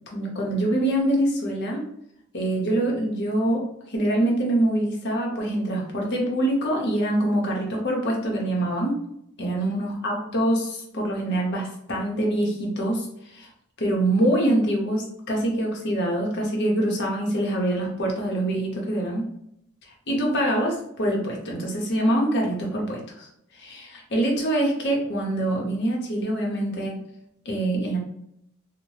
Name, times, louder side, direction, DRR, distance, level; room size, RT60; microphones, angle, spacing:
voice 1, 0.1-1.8 2.3-9.0 9.4-13.1 13.3-13.5 13.8-19.3 20.1-23.3 23.6-27.0 27.5-28.0, right 1 dB, 50° left, -1 dB, 0.7 m, -25 dB
2.7 x 2.0 x 3.1 m, 0.74 s
head